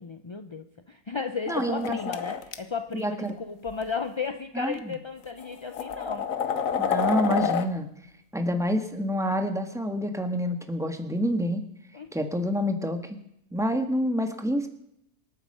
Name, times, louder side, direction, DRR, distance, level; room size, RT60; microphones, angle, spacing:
voice 1, 0.0-6.3 11.9-12.1, left 5 dB, 35° left, 8 dB, 0.5 m, -34 dB
sound 1, 1.5-2.6 3.7-3.8 4.7-4.8 5.4-7.7, left 7 dB, 75° left, 1.4 m, -28 dB
voice 2, 1.5-2.0 2.9-3.3 4.5-4.9 6.8-7.9 8.3-11.6 12.1-13.2 13.5-14.7, equal, ahead, 6 dB, 1.4 m, -27 dB
26.0 x 9.1 x 5.5 m, 0.78 s
omnidirectional pair, 1.4 m